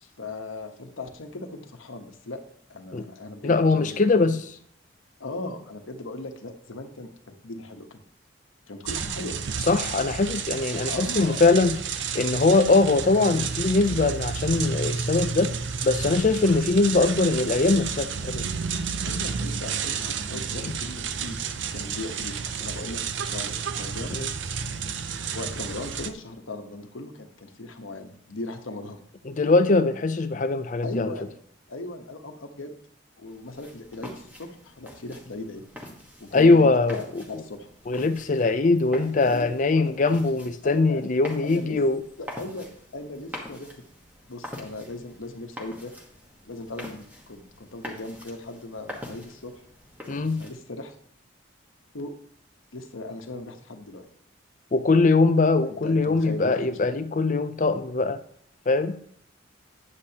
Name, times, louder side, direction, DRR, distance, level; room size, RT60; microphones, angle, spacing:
voice 1, 0.0-2.4 2.7-4.3 5.2-8.0 8.7-9.3 10.9-11.4 19.0-23.0 23.3-24.2 25.1-29.0 30.8-31.3 31.7-32.8 33.2-35.6 36.2-37.7 39.2-40.0 40.6-41.0 41.4-41.8 42.2-42.7 42.9-43.7 44.3-45.9 46.4-49.5 50.3-50.9 51.9-52.1 52.7-54.0 55.6-56.7, left 2 dB, 85° left, 6 dB, 1.1 m, -38 dB
voice 2, 3.4-4.5 9.7-11.8 12.1-15.5 15.8-18.5 20.6-20.7 24.1-24.3 29.3-31.1 36.3-37.4 37.9-42.0 50.1-50.4 54.7-58.2 58.7-59.0, left 3 dB, 40° left, 11 dB, 0.5 m, -22 dB
sound 1, 8.9-26.1, right 6 dB, 65° right, 0.6 m, -31 dB
sound 2, 33.3-50.5, left 1 dB, 10° right, 1.3 m, -44 dB
9.7 x 8.4 x 2.9 m, 0.65 s
head